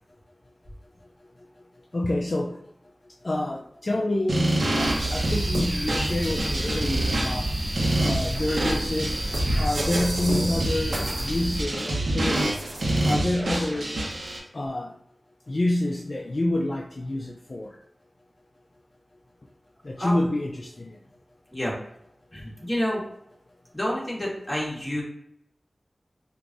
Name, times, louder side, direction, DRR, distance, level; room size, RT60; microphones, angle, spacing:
voice 1, 1.9-2.6 3.2-7.5 8.0-12.5 13.0-13.9 14.5-14.9 15.5-17.8 19.8-21.0, left 1 dB, 55° left, -1 dB, 0.4 m, -28 dB
sound 1, 4.3-14.4, right 1 dB, 85° right, 0.9 m, -27 dB
sound 2, 4.8-11.6, right 1 dB, 25° right, 1.1 m, -29 dB
voice 2, 22.3-23.0 23.7-25.0, equal, 20° left, -4 dB, 1.5 m, -28 dB
4.5 x 2.6 x 2.5 m, 0.75 s
wide cardioid pair, 50°, 0 cm